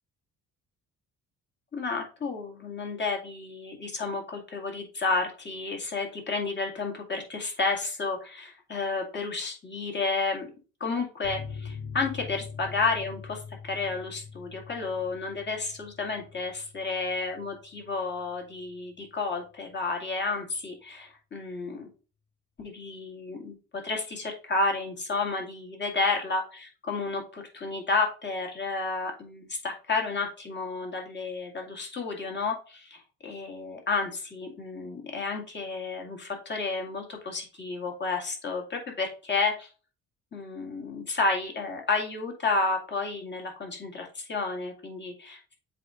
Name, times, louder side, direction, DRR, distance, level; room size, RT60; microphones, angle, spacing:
voice 1, 1.7-10.5 10.8-21.9 22.6-39.7 40.3-45.4, left 3 dB, 30° left, 1 dB, 2.2 m, -31 dB
sound 1, 11.2-18.3 18.6-18.7 19.0-19.1, left 5 dB, 75° left, 1.1 m, -43 dB
7.5 x 2.6 x 4.9 m, 0.36 s
cardioid pair, 105°, 34 cm